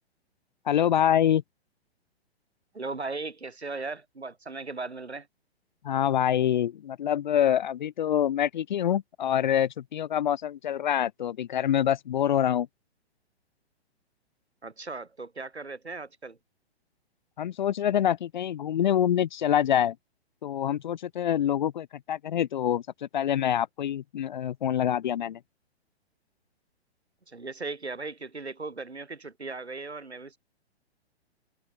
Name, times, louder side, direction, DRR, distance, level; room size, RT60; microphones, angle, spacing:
voice 1, 0.7-1.4 5.8-12.7 17.4-20.0 20.4-25.4, left 10 dB, 45° left, 0.8 m, -26 dB
voice 2, 2.7-5.3 14.6-16.4 27.3-30.4, right 3 dB, 75° right, 4.6 m, -37 dB
figure-of-eight pair, 120°, 33 cm